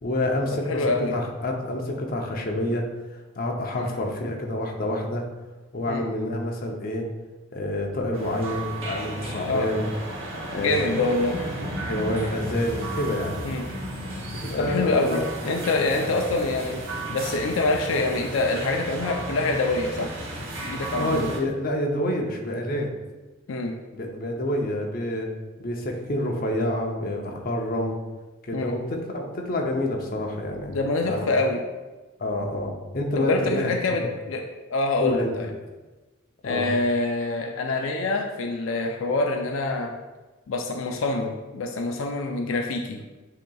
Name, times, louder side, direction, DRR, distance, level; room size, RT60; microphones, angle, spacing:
voice 1, 0.0-2.8 3.1-5.2 5.7-7.1 7.5-9.9 10.5-11.0 11.9-13.5 14.4-15.2 15.7-16.1 21.0-22.9 23.9-25.3 25.6-28.0 28.5-31.3 32.2-34.1 35.0-35.5 36.4-36.7, left 1 dB, 45° left, 1 dB, 0.6 m, -28 dB
voice 2, 0.7-1.2 3.7-3.9 5.9-6.0 9.5-9.7 10.5-11.4 13.4-13.7 14.6-16.8 17.1-20.1 20.6-21.3 23.5-23.8 28.5-28.7 30.7-31.6 33.1-34.4 34.7-35.5 36.4-39.9 40.5-43.0, left 2 dB, 85° left, 3 dB, 0.5 m, -25 dB
sound 1, 8.1-21.4, right 1 dB, 75° right, 0.9 m, -34 dB
7.6 x 2.9 x 2.3 m, 1.2 s
head